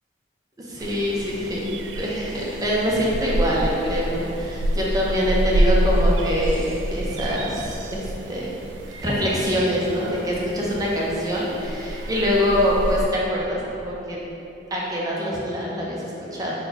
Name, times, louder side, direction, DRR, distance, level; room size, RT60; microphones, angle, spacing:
voice 1, 0.6-8.5 9.0-14.2 14.7-16.5, equal, 20° right, -5 dB, 0.6 m, -24 dB
sound 1, 0.8-13.0, right 1 dB, 90° right, 0.3 m, -27 dB
4.2 x 2.3 x 3.9 m, 2.9 s
head